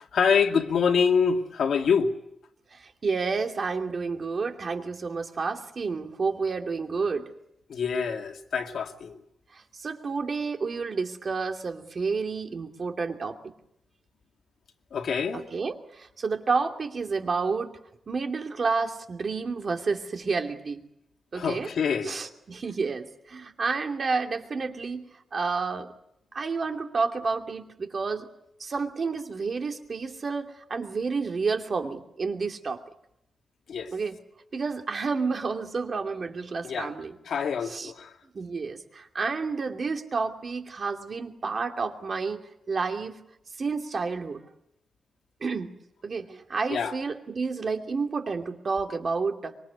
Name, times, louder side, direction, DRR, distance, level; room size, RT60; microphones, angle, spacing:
voice 1, 0.1-2.1 7.7-9.2 14.9-15.5 21.3-22.2 33.7-33.9 36.6-36.9 37.3-38.1 46.7-47.0, left 6 dB, 80° left, 2.3 m, -25 dB
voice 2, 2.7-7.3 9.5-13.5 15.3-17.8 18.1-20.8 21.3-21.7 22.0-25.0 25.3-25.9 26.3-28.3 28.6-32.8 33.9-34.2 34.5-37.1 37.6-37.9 38.3-43.2 43.6-44.4 45.4-45.7 46.0-49.6, right 4 dB, 45° right, 2.6 m, -30 dB
25.5 x 23.5 x 8.3 m
wide cardioid pair, 145°, 0 cm